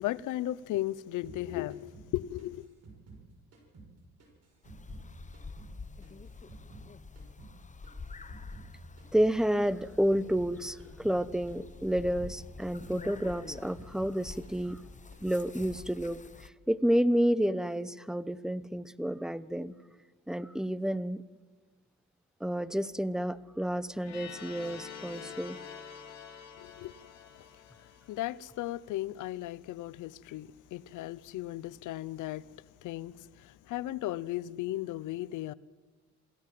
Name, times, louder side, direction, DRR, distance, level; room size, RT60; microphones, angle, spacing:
voice 1, 0.0-2.7 26.6-27.0 27.3-27.5 27.8-32.5 32.8-35.5, left 15 dB, 90° left, 0.8 m, -36 dB
sound 1, 1.2-3.9 4.2-6.9 7.2-10.5 10.8-11.2 11.5-14.2 14.4-14.9 15.1-15.8, right 3 dB, 55° right, 6.7 m, -52 dB
sound 2, 4.6-16.5, left 4 dB, 25° left, 1.1 m, -47 dB
voice 2, 9.1-14.8 15.2-19.7 20.3-21.2 22.4-25.6, equal, ahead, 0.9 m, -30 dB
sound 3, 24.0-28.8, left 7 dB, 60° left, 4.3 m, -47 dB
27.5 x 16.5 x 7.7 m
cardioid pair, 90°, 30 cm